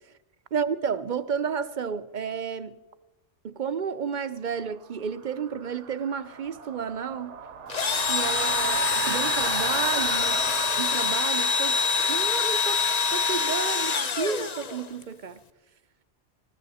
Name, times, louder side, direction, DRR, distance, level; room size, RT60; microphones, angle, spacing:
voice 1, 0.5-2.8 3.4-7.3 7.9-12.8 13.1-15.4, right 6 dB, 50° right, 0.6 m, -31 dB
sound 1, 4.7-13.4, right 6 dB, 80° right, 1.3 m, -36 dB
Engine / Drill, 7.7-15.0, left 5 dB, 40° left, 0.8 m, -25 dB
19.5 x 15.5 x 4.2 m
omnidirectional pair, 1.2 m